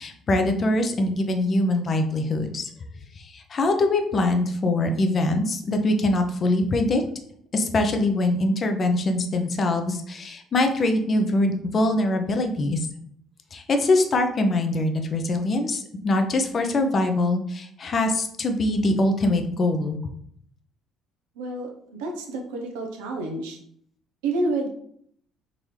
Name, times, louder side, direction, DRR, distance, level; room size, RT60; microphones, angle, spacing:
voice 1, 0.0-2.7 3.2-7.0 7.5-12.9 13.5-20.0, left 2 dB, 45° left, 6 dB, 0.6 m, -23 dB
voice 2, 21.4-21.7 22.0-23.6 24.2-24.7, right 2 dB, 90° right, 2 dB, 0.7 m, -28 dB
3.8 x 3.0 x 3.2 m, 0.66 s
supercardioid pair, 70°, 0 cm